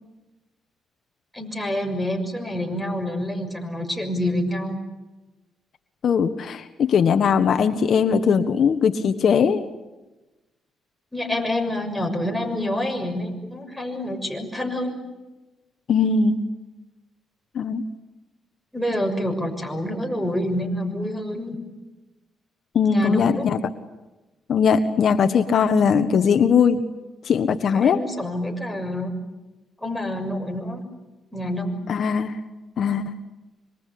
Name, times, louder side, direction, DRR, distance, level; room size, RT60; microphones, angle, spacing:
voice 1, 1.3-4.8 11.1-15.0 18.7-21.6 22.8-23.4 27.8-29.1 29.8-30.8 31.3-31.8, left 1 dB, ahead, 2 dB, 6.6 m, -27 dB
voice 2, 6.0-9.7 15.9-16.4 17.5-17.8 22.7-23.7 24.5-26.8 27.2-28.0 31.9-32.4 32.8-33.1, left 6 dB, 60° left, 9 dB, 1.3 m, -20 dB
26.5 x 24.5 x 8.6 m, 1.1 s
cardioid pair, 90°, 0 cm